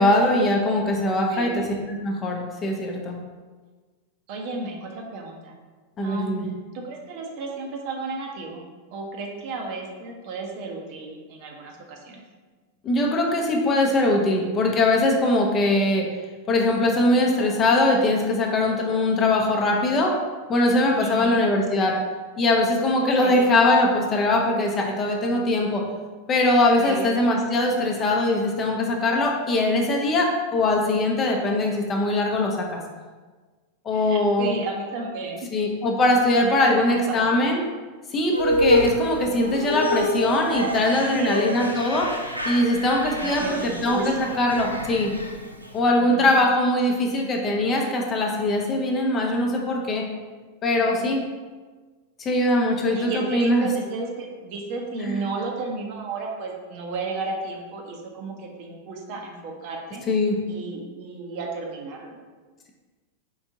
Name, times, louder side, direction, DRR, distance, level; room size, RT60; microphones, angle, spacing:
voice 1, 0.0-3.2 6.0-6.5 12.8-16.1 16.5-20.1 20.5-22.0 22.4-25.8 26.3-32.8 33.8-34.5 35.5-37.6 38.1-42.1 42.5-45.1 45.7-50.0 50.6-51.2 52.2-53.7 55.0-55.2 60.1-60.4, left 2 dB, 25° left, 1 dB, 0.6 m, -21 dB
voice 2, 1.3-1.6 4.3-5.5 6.0-6.4 6.7-8.6 8.9-12.2 21.0-21.4 23.2-23.5 26.8-27.1 33.9-35.5 36.4-37.4 41.0-41.4 43.2-44.3 45.9-46.4 50.7-51.1 52.9-60.0 60.5-62.2, right 3 dB, 45° right, 1 dB, 0.7 m, -33 dB
sound 1, 38.3-45.7, left 1 dB, 90° right, 0.4 m, -27 dB
4.7 x 3.4 x 2.7 m, 1.4 s
figure-of-eight pair, 90°, 0 cm